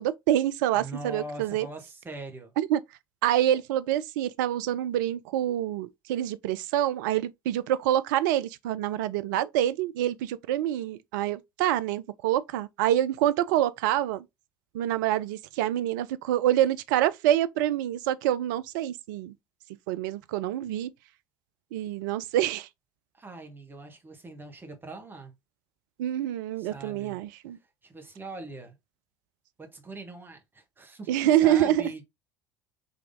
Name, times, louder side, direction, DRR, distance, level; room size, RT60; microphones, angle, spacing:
voice 1, 0.0-1.7 2.6-2.8 3.2-14.2 14.7-19.3 19.9-20.9 21.7-22.7 26.0-27.6 31.1-31.9, right 12 dB, 65° right, 0.4 m, -26 dB
voice 2, 0.7-2.5 23.1-25.3 26.6-27.2 27.5-28.8 29.6-32.0, right 2 dB, 20° right, 1.3 m, -42 dB
3.9 x 3.3 x 2.6 m
figure-of-eight pair, 60°, 11 cm